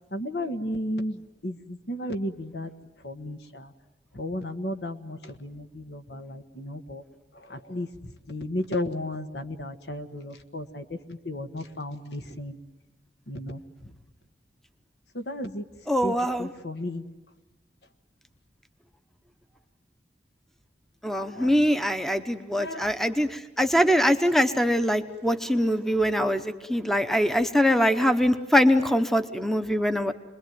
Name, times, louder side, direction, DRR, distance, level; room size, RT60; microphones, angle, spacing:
voice 1, 0.1-2.7 3.0-3.7 4.1-7.0 7.5-12.6 13.3-13.6 15.1-15.6 16.0-17.0 21.3-21.6 22.6-22.9, left 1 dB, 75° left, 8 dB, 1.6 m, -34 dB
voice 2, 15.9-16.5 21.0-30.1, equal, ahead, 9 dB, 0.9 m, -23 dB
27.5 x 21.5 x 9.4 m, 1.1 s
head